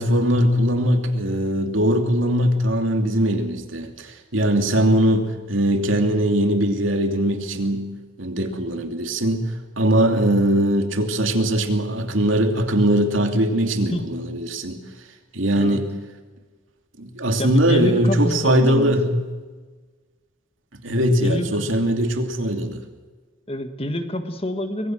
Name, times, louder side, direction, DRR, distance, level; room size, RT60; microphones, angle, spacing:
voice 1, 0.0-7.9 8.2-9.5 9.8-14.8 15.3-15.9 17.0-19.2 20.7-22.8, right 1 dB, 80° right, 5 dB, 2.8 m, -20 dB
voice 2, 17.3-19.0 21.2-21.7 23.5-24.9, left 1 dB, 30° left, 9 dB, 1.6 m, -27 dB
25.0 x 21.0 x 6.3 m, 1.4 s
head